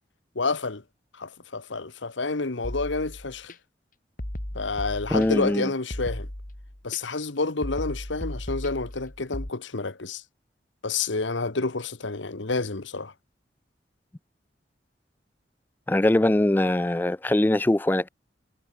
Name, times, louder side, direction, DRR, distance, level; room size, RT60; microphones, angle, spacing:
voice 1, 0.3-0.8 1.2-3.5 4.5-6.3 6.8-10.2 10.8-13.1, left 3 dB, 85° left, 1.4 m, -29 dB
sound 1, 2.6-3.5 4.2-5.5 5.9-7.0 7.6-9.5, left 1 dB, 45° left, 2.5 m, -36 dB
voice 2, 5.1-5.7 15.9-18.1, left 1 dB, 10° left, 0.3 m, -22 dB
head